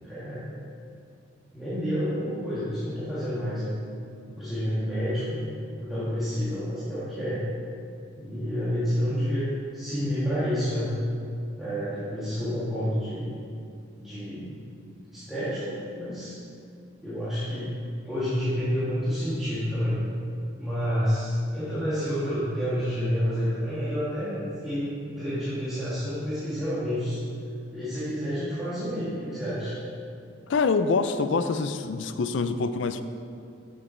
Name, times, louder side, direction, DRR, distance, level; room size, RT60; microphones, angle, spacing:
voice 1, 0.0-0.5 1.5-3.8 4.3-5.4 5.8-7.4 8.2-9.4 9.7-10.9 11.6-13.3 14.0-14.6 15.1-16.4 17.0-17.7 18.0-20.0 20.6-27.2 27.7-29.8, equal, ahead, -13 dB, 1.5 m, -29 dB
voice 2, 30.5-33.0, left 4 dB, 75° left, 11 dB, 0.4 m, -25 dB
7.5 x 6.5 x 4.4 m, 2.4 s
head